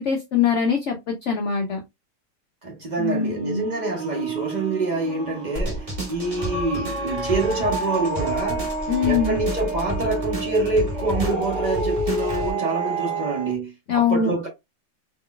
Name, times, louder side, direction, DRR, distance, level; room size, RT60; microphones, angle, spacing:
voice 1, 0.0-1.8 3.0-3.7 8.9-9.4 13.9-14.3, left 6 dB, 80° left, 0.6 m, -23 dB
voice 2, 2.6-14.5, right 3 dB, 80° right, 0.4 m, -26 dB
sound 1, 3.1-13.5, right 2 dB, 50° right, 1.6 m, -30 dB
sound 2, 5.5-12.5, equal, 25° right, 0.9 m, -31 dB
3.8 x 3.1 x 2.2 m
omnidirectional pair, 2.0 m